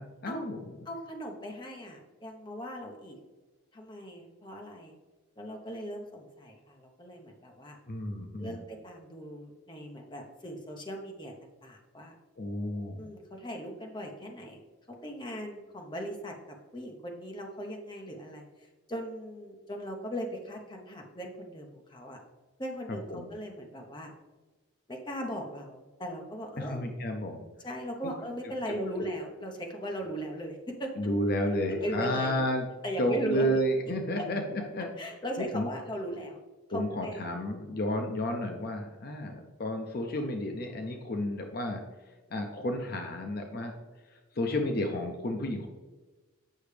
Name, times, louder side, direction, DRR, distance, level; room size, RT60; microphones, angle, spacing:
voice 1, 0.0-0.8 7.9-8.6 12.4-13.0 23.1-23.3 26.6-27.4 28.4-28.8 31.0-32.7 33.0-34.9 35.4-35.7 36.7-41.8 42.3-43.7 44.3-45.7, left 1 dB, 45° left, 3 dB, 0.6 m, -31 dB
voice 2, 0.8-3.2 3.7-4.9 5.4-7.8 8.4-12.1 13.0-14.6 14.9-18.4 18.9-22.2 22.6-24.1 24.9-26.8 27.6-30.9 31.5-32.4 32.8-33.6 34.2-34.3 35.0-36.4 36.7-37.2, equal, 20° left, 2 dB, 0.9 m, -38 dB
8.5 x 5.9 x 3.3 m, 1.2 s
head